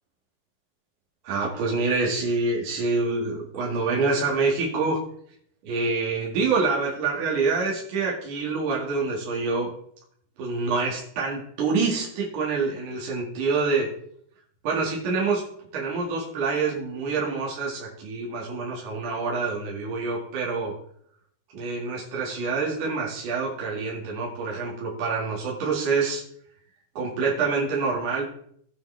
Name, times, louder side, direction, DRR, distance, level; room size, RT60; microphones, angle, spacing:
voice 1, 1.2-5.0 5.7-9.7 10.4-13.9 14.6-15.4 15.7-20.7 21.5-26.2 26.9-28.3, right 4 dB, 50° right, -4 dB, 3.0 m, -26 dB
17.5 x 7.0 x 3.4 m, 0.67 s
omnidirectional pair, 5.2 m